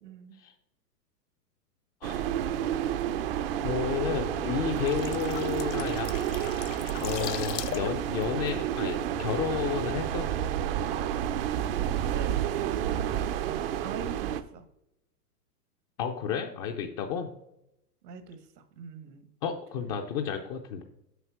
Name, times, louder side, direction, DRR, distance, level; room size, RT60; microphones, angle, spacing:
voice 1, 0.0-0.4 11.5-14.6 18.0-19.3, right 7 dB, 75° right, 10 dB, 1.5 m, -43 dB
sound 1, 2.0-14.4, right 10 dB, 40° right, 0.5 m, -30 dB
voice 2, 3.6-6.1 7.0-10.3 16.0-17.3 19.4-20.8, left 8 dB, 25° left, 3 dB, 0.4 m, -31 dB
sound 2, 4.6-9.4 9.7-9.9, left 14 dB, 90° left, 0.7 m, -40 dB
8.0 x 5.3 x 6.0 m, 0.81 s
hypercardioid pair, 145°, 48 cm